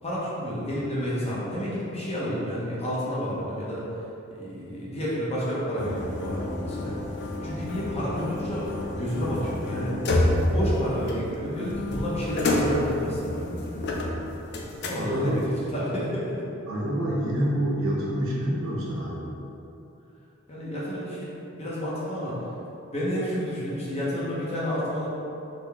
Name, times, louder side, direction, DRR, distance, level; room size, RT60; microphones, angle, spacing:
voice 1, 0.0-3.8 4.3-7.0 7.4-10.0 10.5-13.5 14.8-15.4 15.7-16.5 20.5-22.4 22.9-25.1, equal, 30° left, -7 dB, 1.0 m, -30 dB
sound 1, 5.8-15.5, left 1 dB, 55° left, 0.5 m, -29 dB
voice 2, 15.0-15.4 16.7-19.3, equal, 75° right, -5 dB, 1.0 m, -27 dB
3.9 x 3.4 x 3.5 m, 2.8 s
head